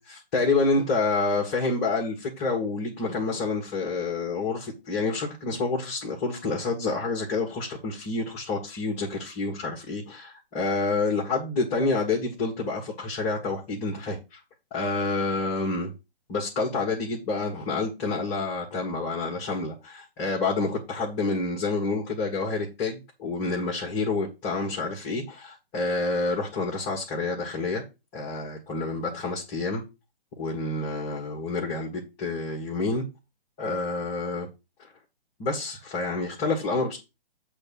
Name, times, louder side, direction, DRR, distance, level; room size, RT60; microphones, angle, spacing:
voice 1, 0.3-14.4 14.7-15.9 16.3-27.8 28.1-29.8 30.4-33.0 33.6-34.5 35.4-37.0, left 3 dB, 25° left, 1.7 m, -28 dB
8.0 x 3.4 x 6.4 m
figure-of-eight pair, 135°, 29 cm